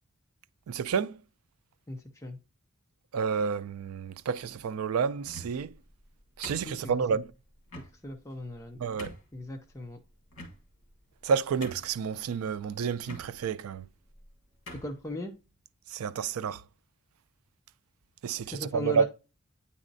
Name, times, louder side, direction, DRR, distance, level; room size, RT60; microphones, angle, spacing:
voice 1, 0.7-1.2 3.1-5.7 6.4-7.3 8.8-9.1 11.2-13.9 15.9-16.6 18.2-19.0, right 6 dB, 85° right, 0.4 m, -30 dB
voice 2, 1.9-2.4 6.6-6.9 8.0-8.8 9.3-10.0 14.8-15.3 18.4-19.0, left 1 dB, 15° left, 0.5 m, -38 dB
sound 1, 5.2-5.7 6.4-7.1 7.7-7.9 8.5-8.6 9.0-9.3 10.3-10.9 11.2-11.3 11.6-12.1 13.0-13.3 14.1-14.3 14.7-15.0, left 1 dB, 70° left, 1.5 m, -44 dB
8.9 x 4.1 x 2.6 m
head